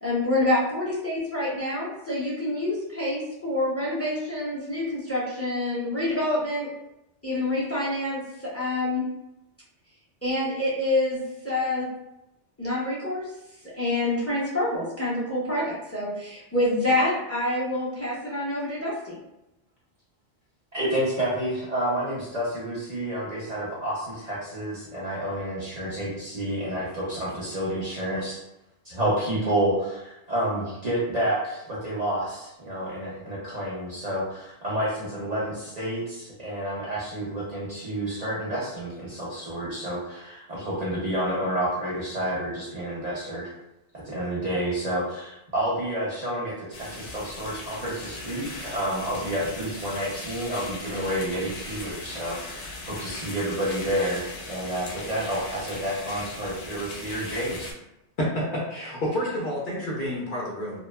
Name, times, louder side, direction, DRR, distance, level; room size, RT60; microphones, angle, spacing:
voice 1, 0.0-6.7 7.2-9.0 10.2-11.9 12.6-13.3 13.6-19.2, left 1 dB, 15° left, -7 dB, 0.5 m, -27 dB
voice 2, 20.7-28.4 28.8-43.5 44.0-57.7, right 1 dB, 45° right, -7 dB, 0.6 m, -29 dB
sound 1, 46.7-57.7, left 2 dB, 80° left, 0.9 m, -39 dB
voice 3, 58.2-60.8, equal, 55° left, -4 dB, 0.7 m, -29 dB
2.7 x 2.2 x 2.2 m, 0.90 s
omnidirectional pair, 1.2 m